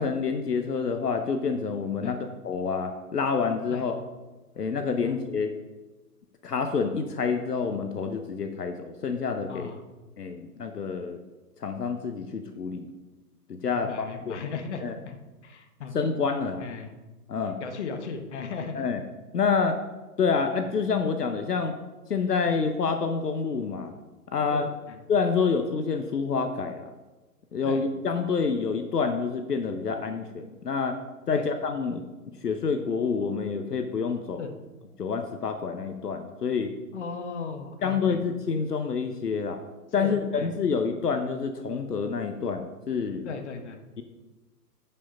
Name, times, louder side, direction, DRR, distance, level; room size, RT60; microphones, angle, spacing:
voice 1, 0.0-4.0 4.6-5.5 6.4-9.7 10.2-11.2 11.6-12.9 13.5-14.4 14.8-14.9 15.9-16.6 17.3-17.6 18.7-19.0 19.3-19.8 20.2-21.7 22.1-23.9 24.3-24.7 25.1-26.9 27.5-31.0 31.3-32.0 32.4-34.5 35.0-36.7 37.8-39.6 39.9-43.3, left 5 dB, 70° left, 6 dB, 1.0 m, -28 dB
voice 2, 9.5-9.8 13.7-15.2 15.4-15.9 16.6-16.9 17.6-18.9 24.5-25.0 27.6-27.8 31.3-31.5 34.4-34.5 36.9-38.2 40.0-40.5 43.2-43.8, left 5 dB, 45° left, 6 dB, 1.3 m, -37 dB
9.7 x 5.7 x 5.1 m, 1.2 s
figure-of-eight pair, 130°, 48 cm